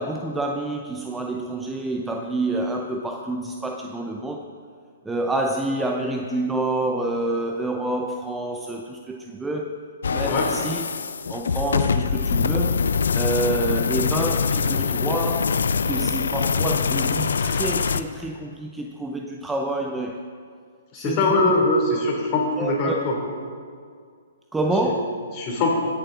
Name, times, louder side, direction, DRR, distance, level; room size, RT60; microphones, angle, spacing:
voice 1, 0.0-4.4 5.0-10.9 11.3-12.9 13.1-20.2 20.9-21.6 22.6-23.0 24.5-25.3, right 2 dB, 5° right, 2 dB, 0.5 m, -28 dB
sound 1, 10.0-18.0, left 5 dB, 80° left, 0.5 m, -23 dB
voice 2, 20.9-23.2 24.8-24.9 25.4-25.8, left 2 dB, 35° left, -1 dB, 2.9 m, -22 dB
16.5 x 7.0 x 3.8 m, 2.1 s
hypercardioid pair, 140°, 0 cm